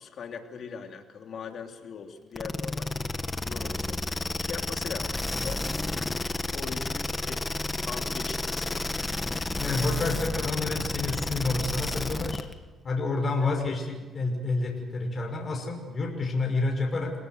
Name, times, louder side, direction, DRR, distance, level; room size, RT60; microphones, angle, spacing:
voice 1, 0.0-2.9 3.3-4.0 4.4-5.7 5.9-7.4 7.8-9.1 13.4-13.5, left 6 dB, 60° left, 4 dB, 3.2 m, -41 dB
sound 1, 2.4-12.5, left 2 dB, 20° left, 1.7 m, -31 dB
voice 2, 9.6-12.5 12.8-17.1, left 3 dB, 40° left, 1 dB, 6.0 m, -29 dB
29.0 x 18.5 x 8.1 m, 1.3 s
cardioid pair, 90°, 0 cm